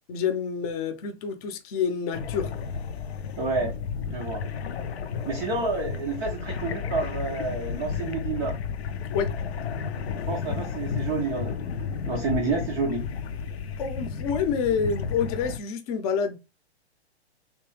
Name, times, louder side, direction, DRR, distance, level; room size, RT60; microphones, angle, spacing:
voice 1, 0.1-2.5 9.1-9.3 13.8-16.4, left 6 dB, 35° left, 0.7 m, -28 dB
sound 1, 2.1-15.6, left 6 dB, 70° left, 0.6 m, -32 dB
voice 2, 3.4-3.7 4.1-4.4 5.3-8.6 10.3-13.1, right 3 dB, 10° right, 0.3 m, -29 dB
3.5 x 2.9 x 3.1 m
hypercardioid pair, 125°, 34 cm